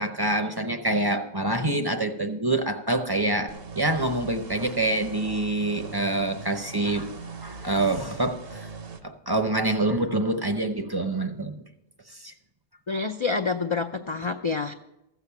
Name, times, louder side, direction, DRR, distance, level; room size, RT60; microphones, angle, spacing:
voice 1, 0.0-7.1 7.4-8.7 9.0-11.6 12.1-12.3, right 2 dB, 25° right, 6 dB, 0.7 m, -26 dB
sound 1, 3.5-9.0, right 4 dB, 60° right, 1.1 m, -41 dB
voice 2, 12.9-14.7, left 4 dB, 45° left, 5 dB, 0.4 m, -27 dB
14.5 x 7.0 x 7.0 m, 0.87 s
omnidirectional pair, 1.2 m